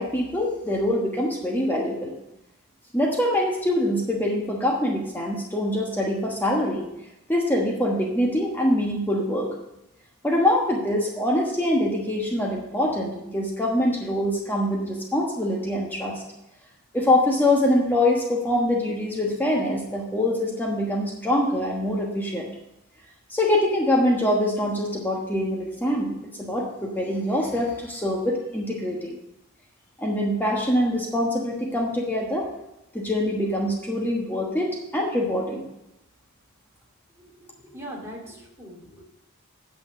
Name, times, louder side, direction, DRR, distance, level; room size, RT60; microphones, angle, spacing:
voice 1, 0.0-2.1 2.9-6.9 7.3-9.5 10.2-16.2 16.9-22.5 23.3-29.2 30.0-32.5 32.9-35.6, left 1 dB, 10° left, -1 dB, 1.2 m, -24 dB
voice 2, 37.2-39.0, equal, 10° right, -2 dB, 2.4 m, -41 dB
9.2 x 5.7 x 7.5 m, 0.89 s
head